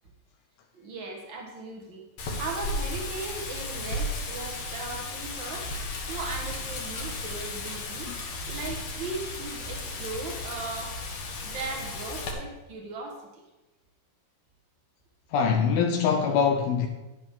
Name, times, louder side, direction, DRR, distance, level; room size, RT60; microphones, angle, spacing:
voice 1, 0.7-2.1 2.4-5.7 6.1-8.1 8.5-10.9 11.4-13.4, right 3 dB, 75° right, 1.1 m, -38 dB
Wind, 2.2-12.3, left 2 dB, 60° left, 2.2 m, -34 dB
voice 2, 15.3-16.9, left 6 dB, 80° left, 2.6 m, -24 dB
11.0 x 10.0 x 3.6 m
omnidirectional pair, 4.5 m